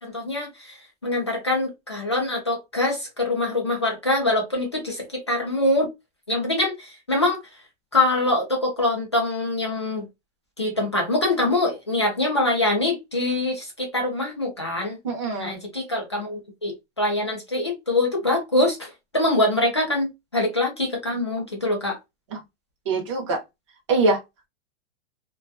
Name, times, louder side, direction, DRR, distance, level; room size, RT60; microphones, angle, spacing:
voice 1, 0.0-5.9 6.3-7.4 7.9-10.1 10.6-15.0 15.4-22.0, left 2 dB, 25° left, 0.4 m, -24 dB
voice 2, 15.0-15.6 22.3-22.4 22.9-23.4 23.9-24.2, right 3 dB, 25° right, 0.6 m, -23 dB
2.4 x 2.2 x 2.4 m
hypercardioid pair, 180°, 37 cm